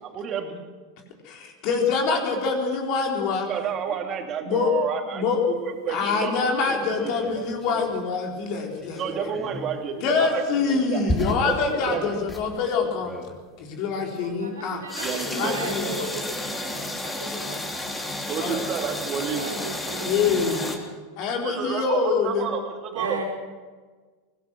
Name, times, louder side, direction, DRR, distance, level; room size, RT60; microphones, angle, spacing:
voice 1, 0.0-0.7 3.5-6.5 7.0-7.2 9.0-11.0 11.5-12.0 15.0-15.6 18.2-19.4 21.4-23.2, right 7 dB, 35° right, 4 dB, 3.0 m, -30 dB
voice 2, 1.2-3.5 4.4-4.7 5.1-5.4 5.9-9.3 10.0-13.1 13.6-14.8 15.3-15.9 18.4-18.6 20.0-20.6 21.2-22.5, left 5 dB, 50° left, 2 dB, 4.2 m, -25 dB
sound 1, 6.6-8.0 8.8-9.8 10.5-12.5 13.0-13.4 14.9-20.8, left 1 dB, 10° left, 3.4 m, -32 dB
voice 3, 14.0-18.2 19.3-20.8 22.9-23.2, right 3 dB, 75° right, 0 dB, 4.7 m, -36 dB
24.0 x 17.5 x 6.3 m, 1.5 s
figure-of-eight pair, 85°, 0 cm